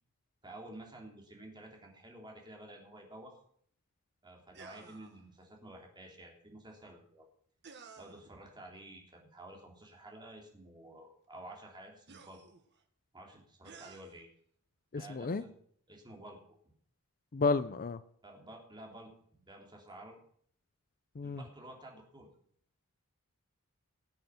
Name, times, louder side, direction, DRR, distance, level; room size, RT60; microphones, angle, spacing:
voice 1, 0.4-3.4 4.2-7.2 8.0-12.4 13.1-14.3 14.9-15.5 15.9-16.4 18.2-20.2 21.2-22.3, right 1 dB, 20° right, 3.3 m, -51 dB
sound 1, 4.5-5.2 7.6-8.3 10.4-10.5 12.1-12.8 13.6-14.2, right 5 dB, 55° right, 1.5 m, -54 dB
voice 2, 14.9-15.4 17.3-18.0 21.2-21.4, left 4 dB, 40° left, 0.5 m, -31 dB
19.0 x 7.8 x 5.9 m
head